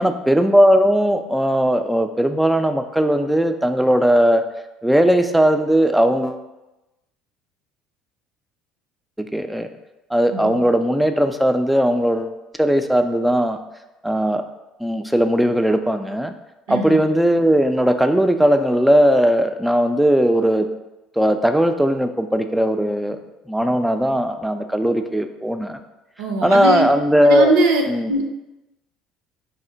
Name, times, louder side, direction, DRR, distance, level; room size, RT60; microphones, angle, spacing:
voice 1, 0.0-4.4 4.8-6.4 9.2-9.7 10.1-13.6 14.0-14.4 14.8-16.3 16.7-20.7 21.2-23.2 23.5-25.8 26.4-27.5 27.9-28.1, equal, 5° right, 7 dB, 0.3 m, -18 dB
voice 2, 16.7-17.0 26.2-26.9 27.3-28.2, right 2 dB, 75° right, 3 dB, 0.5 m, -21 dB
4.2 x 2.1 x 3.8 m, 1.0 s
hypercardioid pair, 65°, 0 cm